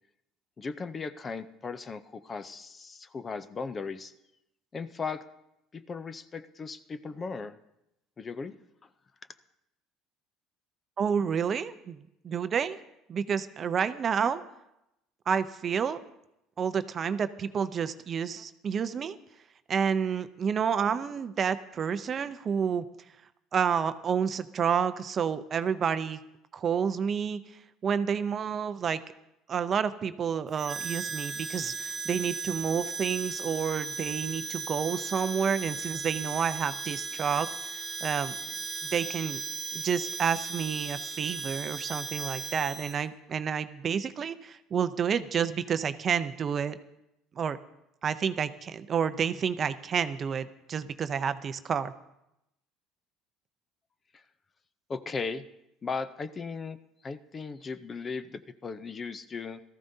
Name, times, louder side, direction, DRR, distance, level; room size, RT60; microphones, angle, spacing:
voice 1, 0.6-4.1 4.7-5.2 5.7-7.6 8.2-8.6 54.9-55.4 55.8-56.8 57.0-59.6, left 4 dB, 25° left, 12 dB, 0.5 m, -37 dB
voice 2, 11.0-12.8 13.1-14.4 15.3-16.0 16.6-19.2 19.7-22.9 23.5-26.2 26.5-27.4 27.8-29.0 29.5-37.5 37.7-38.3 38.9-39.4 39.7-46.8 47.4-47.6 48.0-51.9, right 7 dB, 35° right, 12 dB, 0.5 m, -29 dB
Harmonica, 30.6-43.0, right 4 dB, 10° right, 1.5 m, -36 dB
18.0 x 14.0 x 2.7 m, 0.85 s
cardioid pair, 135°, 0 cm